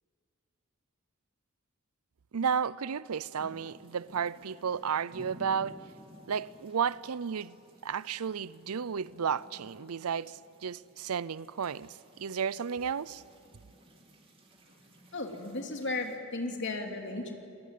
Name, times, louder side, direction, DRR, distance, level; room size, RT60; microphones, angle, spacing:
voice 1, 2.3-5.8 6.3-7.6 7.8-13.2, right 7 dB, 85° right, 0.5 m, -33 dB
sound 1, 3.4-16.2, equal, 25° right, 2.7 m, -56 dB
voice 2, 15.1-17.4, left 2 dB, 55° left, 2.9 m, -35 dB
27.0 x 20.5 x 9.4 m
head